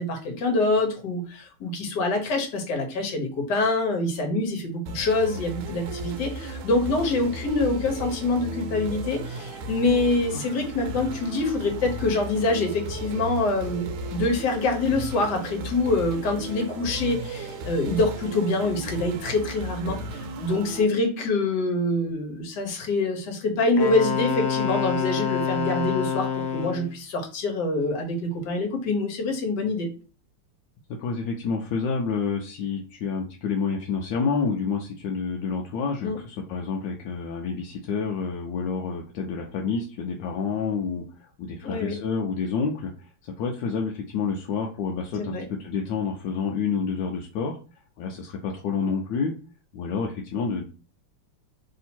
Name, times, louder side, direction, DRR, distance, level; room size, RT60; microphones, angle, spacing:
voice 1, 0.0-26.3 26.5-29.9 36.0-36.2 41.6-41.9 45.2-45.4, left 2 dB, 55° left, 3 dB, 1.4 m, -25 dB
sound 1, 4.9-20.9, right 1 dB, 75° right, 1.4 m, -35 dB
Wind instrument woodwind instrument, 23.8-26.9, left 6 dB, 90° left, 1.6 m, -27 dB
voice 2, 31.0-43.1 43.4-47.6 48.0-49.3 49.7-50.7, left 5 dB, 75° left, 0 dB, 1.1 m, -29 dB
3.5 x 2.8 x 4.3 m, 0.35 s
omnidirectional pair, 2.4 m